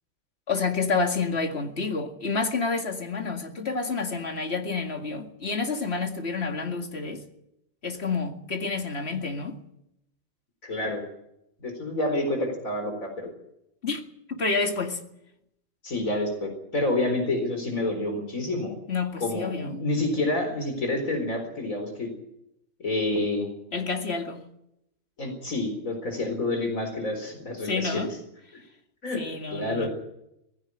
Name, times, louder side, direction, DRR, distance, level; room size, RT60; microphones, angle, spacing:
voice 1, 0.5-7.2 7.8-9.6 13.8-14.0 14.3-15.0 18.9-19.8 23.7-24.4 27.6-28.2 29.2-29.9, left 4 dB, 50° left, 2.3 m, -29 dB
voice 2, 10.6-11.0 11.6-13.3 15.8-18.8 19.2-22.1 22.8-23.5 25.2-28.1 28.5-28.6 29.0-29.2 29.5-29.9, left 2 dB, 85° left, 4.6 m, -28 dB
19.0 x 15.5 x 9.8 m
omnidirectional pair, 1.4 m